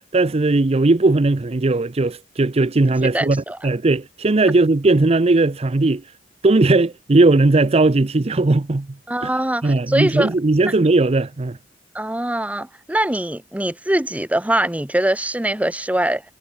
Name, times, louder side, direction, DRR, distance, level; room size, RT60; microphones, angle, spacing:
voice 1, 0.1-6.0 6.4-8.9 9.2-9.3 9.6-11.6, right 2 dB, 35° right, 0.6 m, -17 dB
voice 2, 3.1-3.6 9.1-10.3 11.9-16.2, right 1 dB, 10° right, 1.0 m, -22 dB
head